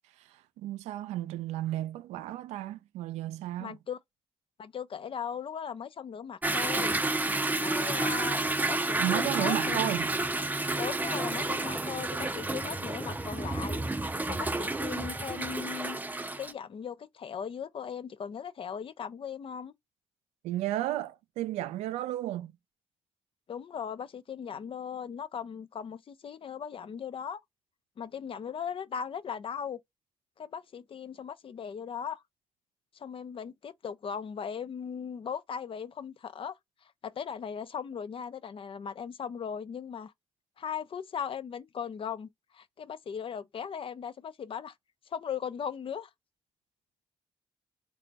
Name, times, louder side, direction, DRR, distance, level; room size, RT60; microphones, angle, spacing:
voice 1, 0.2-3.8 9.0-10.1 20.4-22.5, right 14 dB, 90° right, 0.4 m, -33 dB
voice 2, 3.6-4.0 4.6-7.0 7.6-8.4 8.7-9.9 10.8-13.8 14.3-16.0 16.4-19.7 23.5-27.4 28.0-29.8 30.4-32.2 32.9-36.6 36.8-40.1 40.6-44.7 45.1-46.1, left 7 dB, 55° left, 0.5 m, -38 dB
Toilet flush / Drip / Trickle dribble, 6.4-16.5, right 2 dB, 15° right, 0.5 m, -30 dB
3.3 x 2.2 x 3.9 m
supercardioid pair, 50°, 11 cm